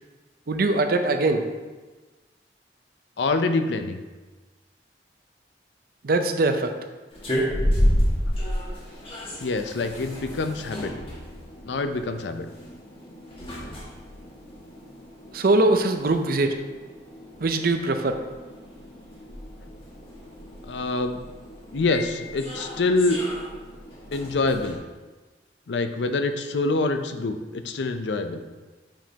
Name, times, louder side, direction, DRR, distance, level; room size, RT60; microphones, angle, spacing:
voice 1, 0.5-1.4 6.0-6.7 15.3-16.6 17.4-18.2, right 2 dB, 55° right, 7 dB, 0.6 m, -22 dB
voice 2, 3.2-4.0 9.4-10.9 11.7-12.5 20.7-21.2 21.7-23.2 24.1-24.8 25.7-28.4, left 3 dB, 75° left, 8 dB, 0.5 m, -25 dB
sound 1, 7.1-24.8, equal, 30° left, 1.6 m, -31 dB
8.8 x 5.1 x 2.8 m, 1.3 s
head